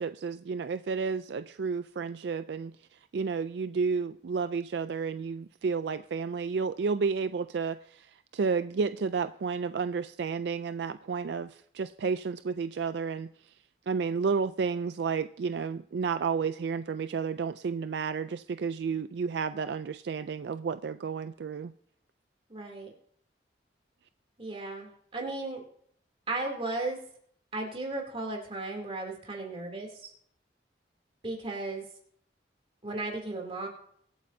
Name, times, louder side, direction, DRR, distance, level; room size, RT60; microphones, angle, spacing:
voice 1, 0.0-2.7 3.1-13.3 13.9-21.7, right 5 dB, 70° right, 12 dB, 0.4 m, -31 dB
voice 2, 22.5-22.9 24.4-25.6 26.3-27.0 27.5-30.1 31.2-31.8 32.8-33.7, right 2 dB, 30° right, 1 dB, 2.9 m, -35 dB
23.5 x 8.5 x 2.7 m, 0.65 s
head